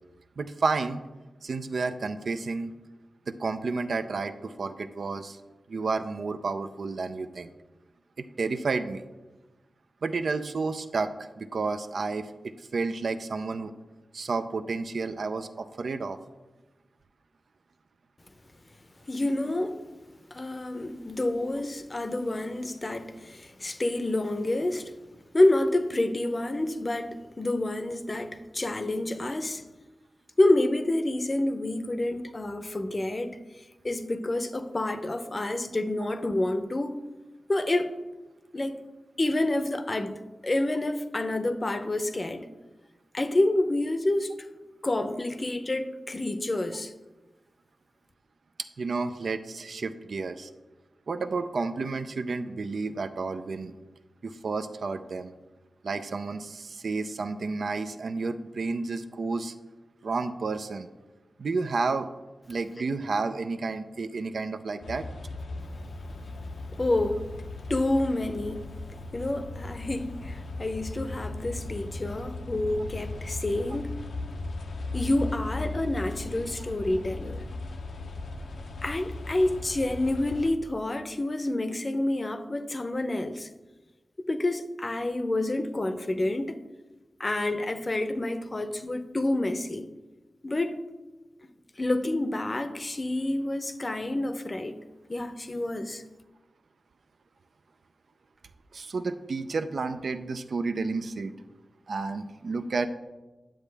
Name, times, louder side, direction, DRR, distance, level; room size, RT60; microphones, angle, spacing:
voice 1, 0.4-1.0 1.4-2.7 3.3-5.4 5.7-7.5 8.2-9.0 10.0-13.7 14.1-16.2 48.8-50.5 51.1-53.7 54.2-55.3 55.8-59.5 60.0-60.9 61.4-62.1 62.5-65.1 98.7-101.3 101.9-102.9, right 4 dB, 70° right, 0.5 m, -31 dB
voice 2, 19.0-19.8 20.3-24.9 25.3-29.6 30.4-33.4 33.8-36.9 37.5-37.9 38.5-38.7 39.2-42.5 43.1-44.4 44.8-46.9 66.8-67.3 67.7-68.7 69.1-73.9 74.9-77.5 78.8-83.5 84.3-86.6 87.2-89.9 90.4-90.8 91.8-94.7 95.1-96.0, left 1 dB, 35° left, 0.6 m, -28 dB
sound 1, 64.8-80.5, left 2 dB, 85° left, 0.7 m, -37 dB
10.0 x 7.2 x 3.4 m
wide cardioid pair, 80°, 0 cm